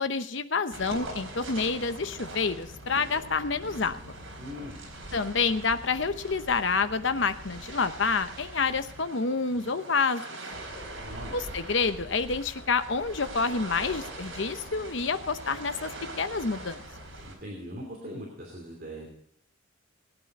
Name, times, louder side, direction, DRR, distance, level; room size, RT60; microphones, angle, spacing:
voice 1, 0.0-4.0 5.1-10.2 11.3-15.9 16.2-16.8, left 4 dB, 60° left, 11 dB, 0.8 m, -28 dB
sound 1, 0.7-17.4, right 1 dB, 65° right, 4.3 m, -42 dB
voice 2, 4.4-4.7 11.0-11.3 17.2-19.1, equal, 45° right, -1 dB, 2.9 m, -40 dB
19.5 x 9.2 x 4.1 m, 0.66 s
head